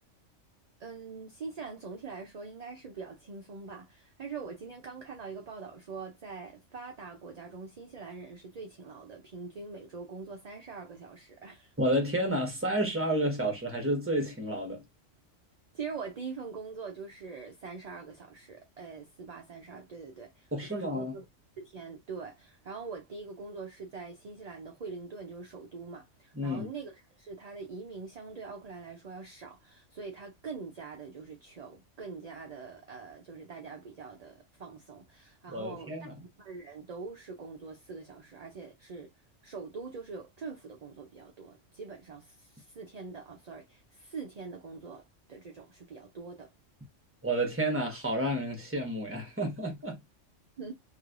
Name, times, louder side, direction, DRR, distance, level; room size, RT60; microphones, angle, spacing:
voice 1, 0.8-11.7 15.7-21.2 21.6-35.9 36.2-39.1 39.4-45.0 45.3-46.5 50.6-50.7, right 4 dB, 45° right, 0.5 m, -43 dB
voice 2, 11.8-14.8 20.5-21.1 26.3-26.7 35.5-36.1 47.2-50.0, right 1 dB, 10° right, 1.1 m, -30 dB
3.1 x 3.0 x 2.5 m
omnidirectional pair, 1.3 m